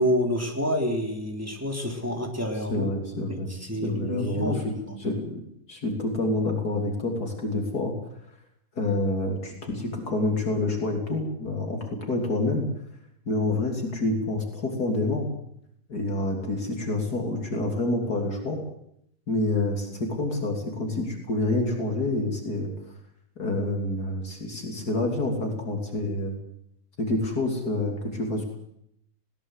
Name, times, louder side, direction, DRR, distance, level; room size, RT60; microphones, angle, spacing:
voice 1, 0.0-2.9 3.3-3.4 3.7-4.7, equal, 10° right, 2 dB, 3.6 m, -27 dB
voice 2, 2.7-3.5 3.8-5.4 5.7-7.9 8.8-12.7 13.3-15.3 15.9-18.6 19.3-22.7 23.4-26.4 27.0-28.4, left 2 dB, 55° left, 2 dB, 3.7 m, -27 dB
20.0 x 18.5 x 8.2 m, 0.73 s
omnidirectional pair, 2.0 m